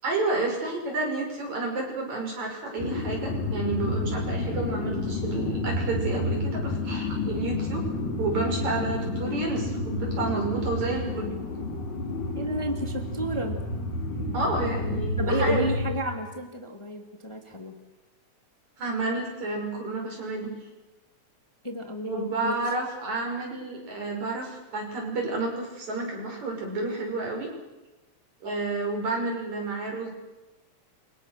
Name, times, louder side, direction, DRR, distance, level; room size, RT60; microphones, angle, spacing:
voice 1, 0.0-7.8 8.2-11.3 14.3-15.7 18.8-20.5 22.0-27.5 28.4-30.1, right 3 dB, 70° right, 1 dB, 7.2 m, -30 dB
sound 1, 2.8-16.0, left 2 dB, 85° left, 4.7 m, -30 dB
voice 2, 12.3-13.6 15.2-17.8 21.6-22.7, equal, 10° left, 4 dB, 1.9 m, -31 dB
29.0 x 25.0 x 6.6 m, 1.1 s
omnidirectional pair, 3.4 m